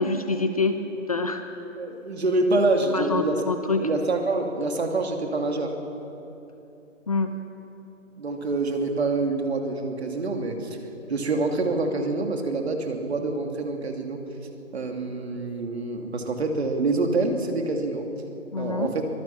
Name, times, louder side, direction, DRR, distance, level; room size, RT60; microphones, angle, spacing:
voice 1, 0.0-1.4 2.9-3.8 7.1-7.3 18.5-18.9, left 3 dB, 30° left, 7 dB, 0.8 m, -26 dB
voice 2, 1.8-3.4 3.7-5.7 8.2-10.8 11.1-14.2 14.7-18.1 18.6-19.0, right 3 dB, 55° right, 3 dB, 2.7 m, -26 dB
24.0 x 19.5 x 5.8 m, 2.9 s
hypercardioid pair, 165°, 39 cm